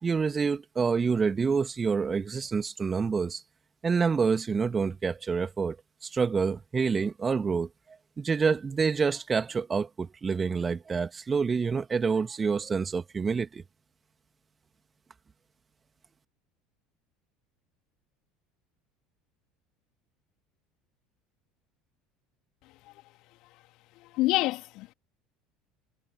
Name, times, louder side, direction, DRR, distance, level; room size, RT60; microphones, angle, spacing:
voice 1, 0.0-3.4 3.8-5.8 6.0-7.7 8.2-13.6, right 5 dB, 25° right, 2.8 m, -27 dB
voice 2, 24.0-24.9, left 19 dB, 50° left, 3.4 m, -27 dB
figure-of-eight pair, 65°, 0 cm